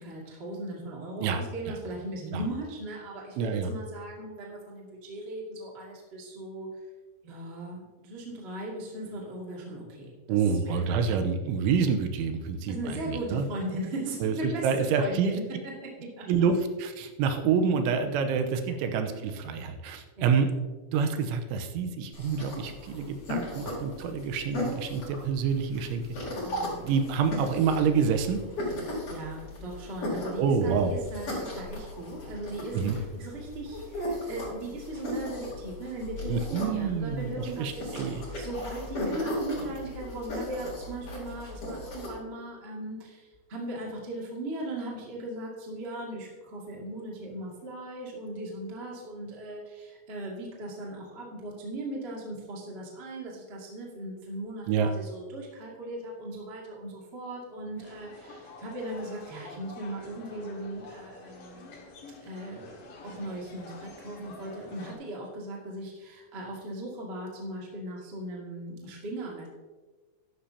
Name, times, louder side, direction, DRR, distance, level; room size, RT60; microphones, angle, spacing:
voice 1, 0.0-6.7 7.2-11.5 12.7-15.7 16.2-16.3 18.7-18.8 20.2-20.3 26.3-26.8 29.1-33.8 34.2-37.9 38.4-43.1 43.5-61.7 62.2-62.7 63.0-69.5, right 1 dB, 55° right, -3 dB, 0.6 m, -38 dB
voice 2, 3.4-3.7 10.3-13.5 14.2-15.4 16.3-20.5 20.9-26.0 26.8-28.4 30.4-30.9 32.7-33.0 36.3-38.2 54.7-54.9, right 6 dB, 90° right, 6 dB, 3.3 m, -27 dB
sound 1, 22.1-42.1, left 1 dB, 35° left, 3.7 m, -37 dB
sound 2, 57.8-64.9, left 3 dB, 60° left, 2.8 m, -48 dB
13.0 x 11.5 x 2.8 m, 1.3 s
omnidirectional pair, 5.4 m